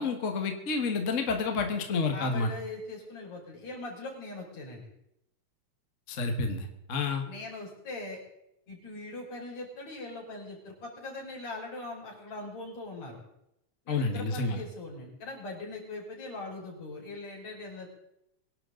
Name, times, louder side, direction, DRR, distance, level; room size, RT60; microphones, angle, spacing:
voice 1, 0.0-2.5 6.1-7.2 13.9-14.6, left 4 dB, 35° left, 5 dB, 1.5 m, -29 dB
voice 2, 2.1-4.9 7.2-8.2 8.7-13.2 13.8-17.9, left 2 dB, 70° left, -3 dB, 6.6 m, -41 dB
24.5 x 11.5 x 3.9 m, 0.81 s
omnidirectional pair, 3.3 m